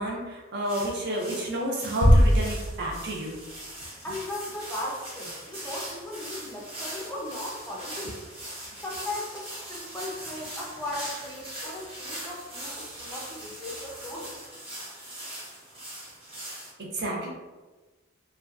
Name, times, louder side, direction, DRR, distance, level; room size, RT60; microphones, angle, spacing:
voice 1, 0.0-3.4 16.8-17.3, right 1 dB, 60° right, -2 dB, 0.6 m, -30 dB
sound 1, 0.6-16.7, right 1 dB, 30° right, 0.9 m, -41 dB
sound 2, 2.0-3.6, equal, 85° left, 0.5 m, -21 dB
voice 2, 4.0-8.2 8.8-14.3, left 1 dB, 10° left, -4 dB, 0.4 m, -37 dB
2.6 x 2.1 x 2.3 m, 1.2 s
head